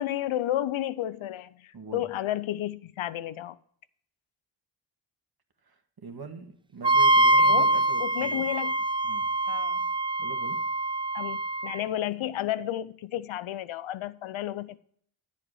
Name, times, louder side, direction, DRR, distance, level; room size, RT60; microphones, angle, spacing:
voice 1, 0.0-3.6 7.4-7.7 8.0-8.8 9.5-9.9 11.1-14.8, left 13 dB, 75° left, 0.7 m, -32 dB
voice 2, 1.7-2.0 5.7-8.4 9.0-9.2 10.2-10.6, right 4 dB, 50° right, 1.8 m, -42 dB
Wind instrument woodwind instrument, 6.8-11.8, right 2 dB, 10° right, 0.3 m, -24 dB
9.9 x 7.2 x 4.8 m
cardioid pair, 50°, 48 cm